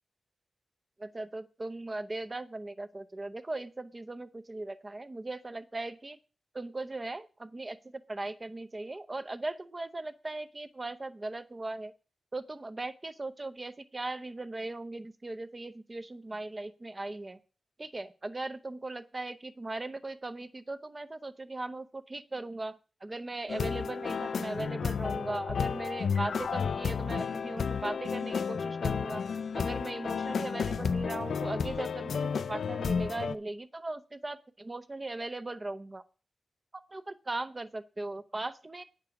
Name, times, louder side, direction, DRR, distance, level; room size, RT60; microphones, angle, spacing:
voice 1, 1.0-6.2 6.5-11.9 12.3-17.4 17.8-29.2 29.5-36.0 36.7-38.8, right 2 dB, 20° right, 10 dB, 0.7 m, -38 dB
sound 1, 23.5-33.3, left 6 dB, 70° left, 0.4 m, -32 dB
9.6 x 6.8 x 5.8 m, 0.35 s
wide cardioid pair, 150°, 0 cm